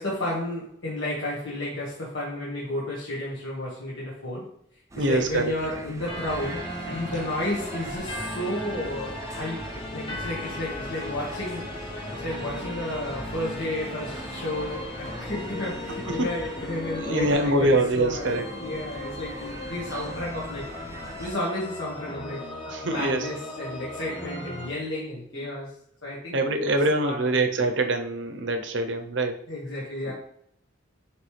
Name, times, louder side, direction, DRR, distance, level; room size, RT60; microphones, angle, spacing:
voice 1, 0.0-4.5 4.9-11.7 12.1-20.7 21.2-22.5 22.9-25.7 26.0-26.4 26.7-27.4 29.5-30.1, left 1 dB, 70° left, -6 dB, 1.6 m, -32 dB
sound 1, 4.9-21.3, right 1 dB, 15° right, 0.5 m, -42 dB
voice 2, 5.0-5.5 16.1-16.3 17.0-18.5 22.7-23.2 25.3-25.4 26.3-29.4 30.1-30.2, right 2 dB, 70° right, 6 dB, 0.8 m, -24 dB
sound 2, 6.1-24.7, left 1 dB, 25° left, 1.1 m, -37 dB
9.0 x 3.3 x 3.3 m, 0.67 s
head